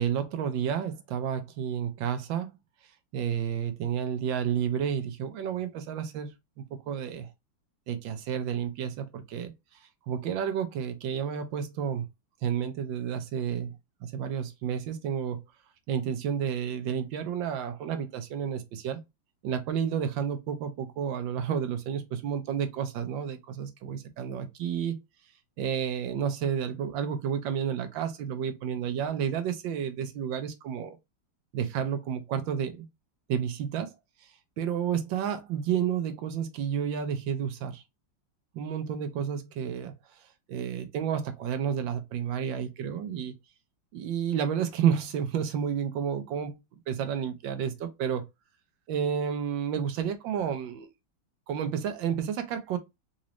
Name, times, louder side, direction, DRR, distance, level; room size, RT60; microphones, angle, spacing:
voice 1, 0.0-2.5 3.1-6.3 6.9-7.3 7.9-9.5 10.1-12.0 12.4-13.7 14.0-15.4 15.9-19.0 19.4-25.0 25.6-31.0 31.5-32.9 33.3-33.9 34.6-37.8 38.5-39.9 40.5-43.3 43.9-46.6 46.9-48.2 48.9-50.9 51.5-52.8, right 8 dB, 75° right, 1.4 m, -31 dB
4.0 x 2.6 x 3.0 m
omnidirectional pair, 2.1 m